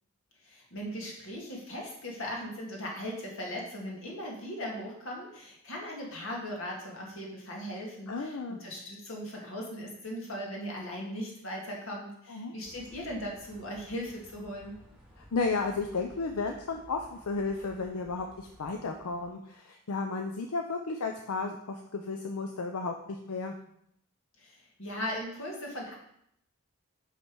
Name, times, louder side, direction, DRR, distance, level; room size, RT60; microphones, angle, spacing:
voice 1, 0.4-14.8 24.4-25.9, equal, 65° left, -1 dB, 1.9 m, -38 dB
voice 2, 8.1-8.6 12.3-12.5 15.2-23.5, left 4 dB, 85° left, 4 dB, 0.6 m, -33 dB
sound 1, 12.6-19.3, equal, 5° right, 2.0 m, -55 dB
5.9 x 5.4 x 4.6 m, 0.73 s
head